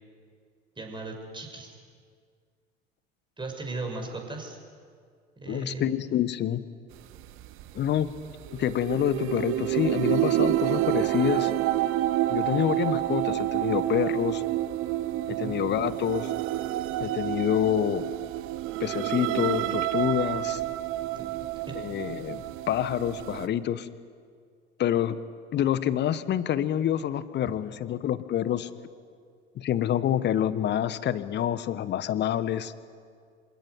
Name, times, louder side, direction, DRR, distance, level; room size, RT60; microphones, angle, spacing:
voice 1, 0.8-1.8 3.4-4.6 5.4-5.8 15.3-15.6 21.1-21.8, right 3 dB, 15° right, 2 dB, 6.0 m, -37 dB
voice 2, 5.5-6.6 7.7-8.1 8.5-11.5 12.3-14.4 15.3-16.3 17.0-18.0 18.8-20.6 21.7-23.9 24.8-25.2 25.5-28.7 29.5-32.7, left 11 dB, 35° left, 15 dB, 1.3 m, -27 dB
sound 1, 6.9-23.5, right 15 dB, 45° right, 1.1 m, -29 dB
27.0 x 17.0 x 9.6 m, 2.1 s
figure-of-eight pair, 70°, 30 cm